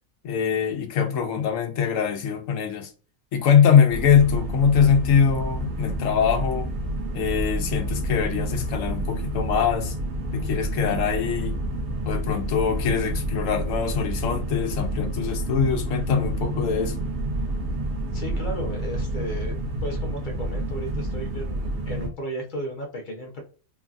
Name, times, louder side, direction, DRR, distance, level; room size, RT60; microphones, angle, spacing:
voice 1, 0.2-2.9 3.3-6.7 7.1-10.0 10.3-11.6 12.1-16.9, left 7 dB, 70° left, 1.0 m, -22 dB
sound 1, 3.9-22.1, right 1 dB, 60° right, 0.9 m, -29 dB
voice 2, 18.1-23.4, equal, 45° left, 0.7 m, -34 dB
3.1 x 2.4 x 2.3 m
omnidirectional pair, 1.4 m